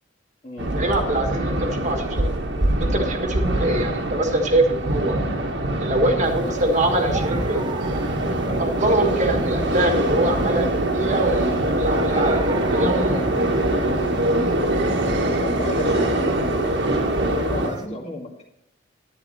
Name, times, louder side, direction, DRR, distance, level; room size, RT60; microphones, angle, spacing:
sound 1, 0.6-17.7, right 1 dB, 65° right, 1.5 m, -23 dB
voice 1, 0.7-2.3 2.8-5.2 5.8-7.6 8.6-13.3, right 1 dB, 40° right, 3 dB, 1.5 m, -23 dB
sound 2, 6.2-17.9, right 3 dB, 25° right, 0.6 m, -37 dB
voice 2, 15.3-17.1 17.4-18.3, left 2 dB, 35° left, 0 dB, 2.0 m, -33 dB
11.0 x 9.7 x 4.2 m, 0.76 s
head